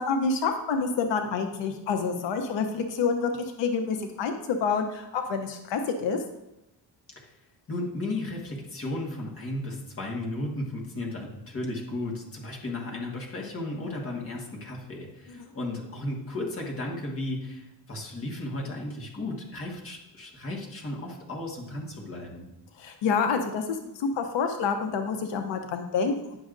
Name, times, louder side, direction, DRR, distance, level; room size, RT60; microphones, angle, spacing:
voice 1, 0.0-3.3 3.6-6.2 15.3-15.5 22.8-26.4, left 5 dB, 90° left, 5 dB, 0.8 m, -28 dB
voice 2, 7.7-22.5, left 2 dB, 30° left, -2 dB, 1.5 m, -34 dB
10.0 x 6.3 x 2.5 m, 0.91 s
wide cardioid pair, 165°, 43 cm